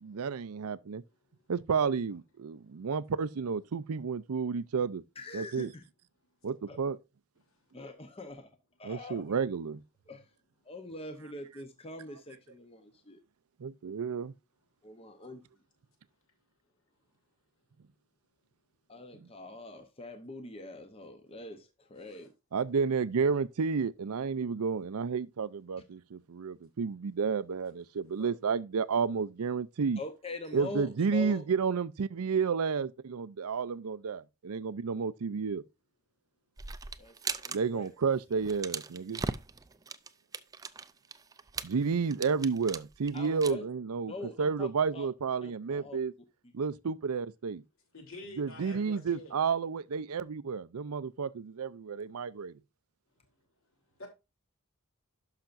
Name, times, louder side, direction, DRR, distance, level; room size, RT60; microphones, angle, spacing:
voice 1, 0.0-1.0 1.5-5.0 5.3-5.7 6.4-7.0 8.8-9.8 13.6-14.3 22.5-30.0 30.5-35.6 37.5-39.2 41.6-44.1 44.4-46.1 46.5-47.6 48.4-52.5, right 5 dB, 90° right, 0.5 m, -31 dB
voice 2, 5.2-5.8 6.7-6.8 7.7-8.5 8.8-9.4 10.1-10.3 10.6-13.2 14.8-15.4 18.9-22.3 30.0-31.4 37.0-37.2 37.5-37.9 43.1-43.7 44.1-45.1 45.4-46.0 46.4-46.5, left 2 dB, 25° left, 0.8 m, -43 dB
sound 1, 36.6-37.6 37.8-38.0 38.3-43.5, right 4 dB, 15° right, 0.4 m, -38 dB
voice 3, 47.9-49.3 54.0-54.1, left 2 dB, 70° left, 3.1 m, -48 dB
11.5 x 5.8 x 2.5 m
head